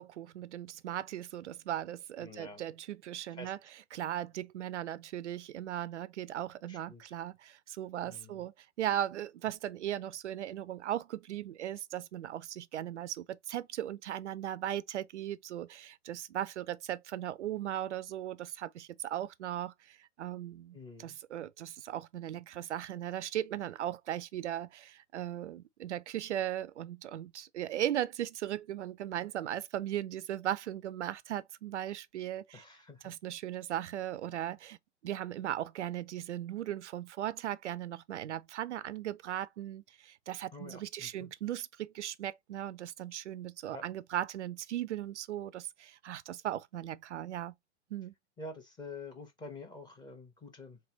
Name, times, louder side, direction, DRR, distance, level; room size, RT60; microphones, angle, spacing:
voice 1, 0.0-3.6 3.9-8.5 8.8-32.6 33.0-34.8 35.0-47.5 47.9-48.1, right 12 dB, 80° right, 0.5 m, -38 dB
voice 2, 2.2-2.6 3.3-3.5 6.7-7.1 8.0-8.4 20.7-21.2 32.5-33.1 40.5-41.3 43.7-43.8 48.4-50.8, left 2 dB, 10° left, 1.0 m, -47 dB
3.5 x 3.3 x 2.9 m
hypercardioid pair, 125°, 34 cm